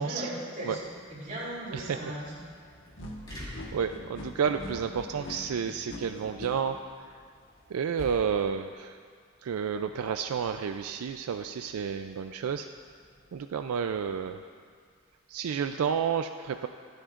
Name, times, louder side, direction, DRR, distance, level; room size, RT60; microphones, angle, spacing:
voice 1, 0.0-2.3 5.1-5.3, right 1 dB, 35° right, -7 dB, 3.4 m, -37 dB
sound 1, 0.7-16.0, left 1 dB, 20° left, 2.5 m, -52 dB
sound 2, 3.0-6.5, left 1 dB, 55° left, 1.4 m, -42 dB
voice 2, 3.7-6.8 7.7-9.0 9.4-12.7 13.3-14.4 15.3-16.7, right 7 dB, 85° right, 8 dB, 0.4 m, -30 dB
23.5 x 7.9 x 2.5 m, 2.1 s
head